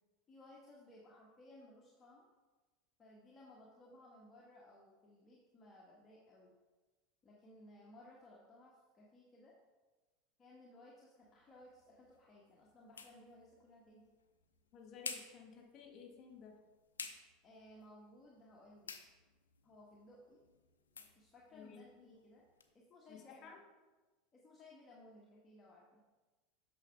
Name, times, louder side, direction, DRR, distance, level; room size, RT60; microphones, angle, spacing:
voice 1, 0.3-2.3 3.0-6.5 7.2-9.5 10.4-14.0 17.4-18.9 19.6-20.4 21.2-22.5 22.7-23.5 24.3-26.0, left 1 dB, 25° left, -4 dB, 1.5 m, -60 dB
sound 1, 11.2-22.7, left 5 dB, 80° left, 0.7 m, -54 dB
voice 2, 14.7-16.6 21.5-22.0 23.1-23.6, left 6 dB, 45° left, 2 dB, 1.7 m, -55 dB
9.0 x 6.3 x 3.5 m, 1.2 s
figure-of-eight pair, 80°, 0 cm